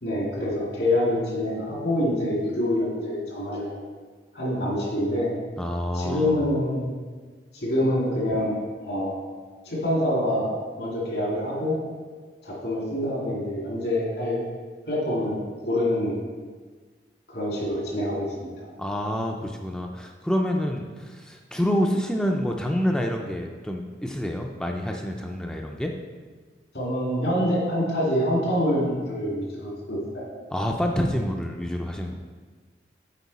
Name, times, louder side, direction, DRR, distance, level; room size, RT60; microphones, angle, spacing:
voice 1, 0.0-3.7 4.3-5.3 5.9-6.9 7.5-9.1 9.7-10.5 10.8-11.8 12.4-14.4 14.9-16.2 17.3-18.7 26.7-30.2, left 1 dB, 75° left, -4 dB, 2.3 m, -26 dB
voice 2, 5.6-6.4 18.8-25.9 30.5-32.2, equal, 5° left, 1 dB, 0.4 m, -27 dB
8.3 x 4.7 x 4.1 m, 1.4 s
head